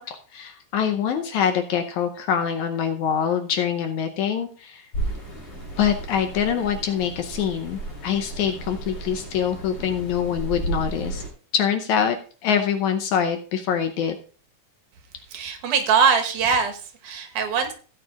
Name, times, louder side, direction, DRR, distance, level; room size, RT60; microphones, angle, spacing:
voice 1, 0.0-4.8 5.8-11.2 11.5-12.2 12.4-14.2, left 8 dB, 75° left, 6 dB, 2.1 m, -24 dB
sound 1, 4.9-11.3, right 2 dB, 40° left, 3.9 m, -33 dB
voice 2, 15.3-17.7, right 6 dB, 80° right, 5 dB, 2.7 m, -22 dB
16.0 x 8.9 x 2.4 m, 0.39 s
omnidirectional pair, 3.5 m